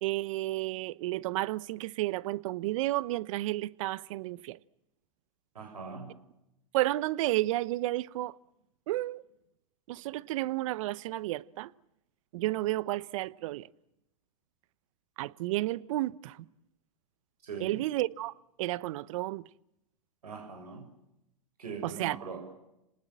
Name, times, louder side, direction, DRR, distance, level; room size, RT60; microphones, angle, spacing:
voice 1, 0.0-4.6 6.7-8.3 8.9-9.2 9.9-11.7 12.3-13.7 15.2-16.4 17.6-18.3 18.6-19.4 21.8-22.2, right 17 dB, 60° right, 0.9 m, -32 dB
voice 2, 5.5-6.1 17.4-17.8 20.2-20.9 21.6-22.5, right 5 dB, 85° right, 6.8 m, -41 dB
30.0 x 19.5 x 7.6 m
hypercardioid pair, 110°, 19 cm